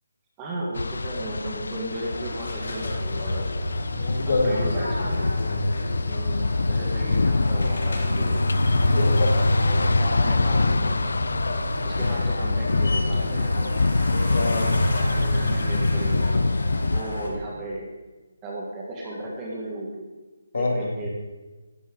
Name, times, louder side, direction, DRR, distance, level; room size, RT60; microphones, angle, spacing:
voice 1, 0.4-3.6 4.2-5.2 6.1-8.4 8.9-11.1 11.8-13.7 15.2-16.5 16.9-17.9 18.4-20.1 20.5-21.1, right 1 dB, 10° right, -4 dB, 1.7 m, -35 dB
sound 1, 0.8-17.0, left 3 dB, 80° left, 0.4 m, -26 dB
sound 2, 2.0-17.3, left 1 dB, 65° left, 4.4 m, -27 dB
voice 2, 3.9-4.8 5.4-5.8 7.0-7.1 8.9-9.3 14.3-14.8 20.5-20.9, left 2 dB, 45° left, 2 dB, 2.4 m, -26 dB
16.0 x 14.0 x 3.9 m, 1.2 s
hypercardioid pair, 180°, 0 cm